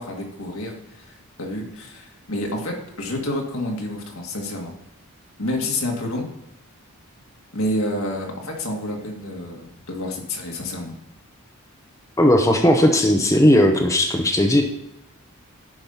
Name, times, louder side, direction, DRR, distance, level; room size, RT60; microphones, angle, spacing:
voice 1, 0.0-4.7 5.4-6.3 7.5-10.9, left 1 dB, 70° left, 1 dB, 2.0 m, -29 dB
voice 2, 12.2-14.6, left 1 dB, 15° left, 3 dB, 0.8 m, -16 dB
10.5 x 5.3 x 5.6 m, 0.84 s
head